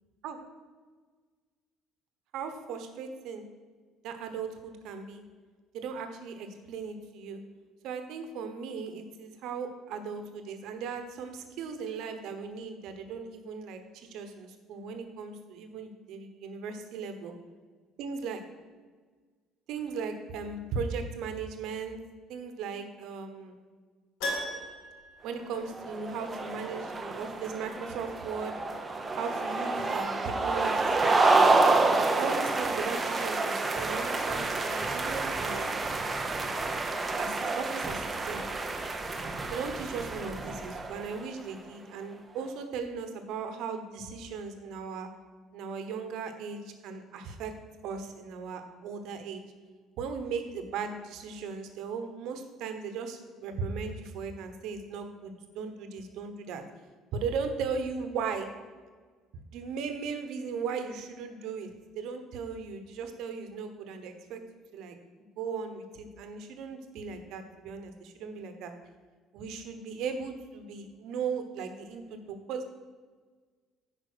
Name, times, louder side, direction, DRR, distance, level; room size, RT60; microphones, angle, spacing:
voice 1, 2.3-3.4 4.0-5.2 5.7-7.4 7.8-17.3 18.0-18.4 19.7-22.0 22.3-23.5 25.2-28.6 29.2-31.5 32.2-36.0 37.2-38.4 39.5-45.1 45.5-47.5 47.8-49.4 50.0-56.6 57.1-58.5 59.5-61.7 61.9-64.4 64.7-68.7 69.3-72.7, right 5 dB, 60° right, 7 dB, 1.0 m, -37 dB
Keyboard (musical), 24.2-26.3 26.5-26.6 29.3-29.4 29.6-29.7, left 1 dB, 80° left, 1.9 m, -37 dB
sound 1, 25.6-41.3, right 3 dB, 15° right, 0.6 m, -28 dB
9.7 x 5.2 x 6.2 m, 1.5 s
cardioid pair, 175°, 0 cm